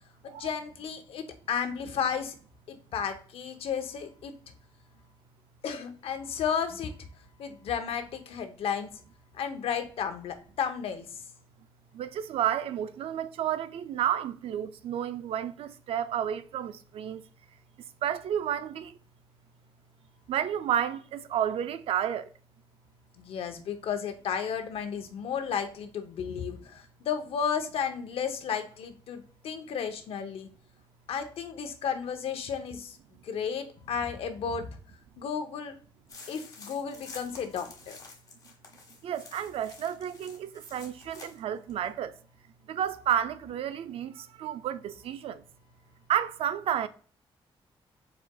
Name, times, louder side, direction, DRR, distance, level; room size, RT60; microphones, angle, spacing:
voice 1, 0.2-2.3 2.7-4.3 5.6-6.9 7.4-8.9 9.3-11.1 23.2-30.5 31.1-33.0 33.2-34.7 35.2-35.7 36.3-38.0, left 7 dB, 90° left, 0.7 m, -33 dB
voice 2, 11.9-17.2 18.0-19.0 20.3-22.3 39.0-42.2 42.7-45.4 46.1-46.9, right 10 dB, 90° right, 0.4 m, -31 dB
sound 1, 36.1-41.4 41.7-41.8, left 4 dB, 40° left, 1.2 m, -49 dB
4.6 x 4.3 x 2.2 m
wide cardioid pair, 140°, 9 cm